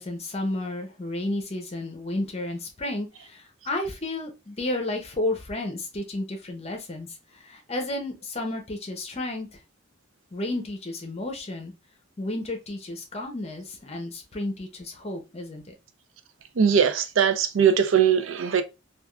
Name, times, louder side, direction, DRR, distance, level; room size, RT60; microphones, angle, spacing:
voice 1, 0.0-9.5 10.3-11.7 12.2-15.7, left 1 dB, 35° left, 0.7 m, -32 dB
voice 2, 16.6-18.6, right 7 dB, 85° right, 0.4 m, -20 dB
3.4 x 2.4 x 2.3 m
head